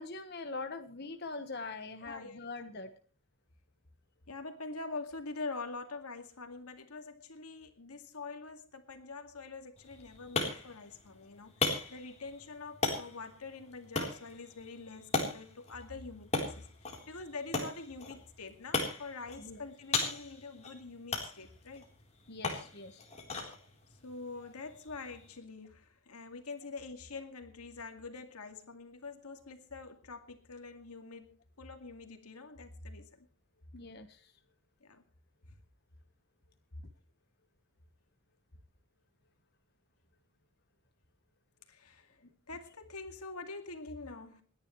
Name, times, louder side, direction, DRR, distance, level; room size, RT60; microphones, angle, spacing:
voice 1, 0.0-2.9 19.4-19.7 22.3-23.1 24.3-24.5 33.7-34.3 42.2-42.3, left 3 dB, 45° left, 6 dB, 1.3 m, -43 dB
voice 2, 2.0-2.4 4.3-21.9 24.0-33.3 34.8-35.0 35.5-35.6 41.7-42.2 42.5-44.4, left 3 dB, 90° left, 6 dB, 2.2 m, -45 dB
sound 1, 9.8-25.4, left 3 dB, 30° left, 3.8 m, -38 dB
28.0 x 10.5 x 3.2 m, 0.38 s
head